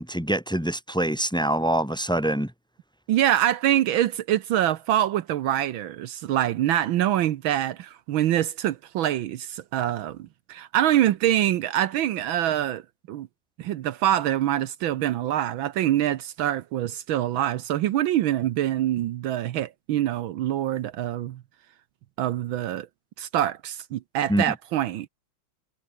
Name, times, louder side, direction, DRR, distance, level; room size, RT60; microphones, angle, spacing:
voice 1, 0.0-2.5 24.3-24.4, right 1 dB, ahead, 2.2 m, -25 dB
voice 2, 3.1-12.8 13.1-13.3 13.6-21.4 22.2-22.9 23.2-25.1, right 12 dB, 75° right, 1.5 m, -25 dB
omnidirectional pair, 2.3 m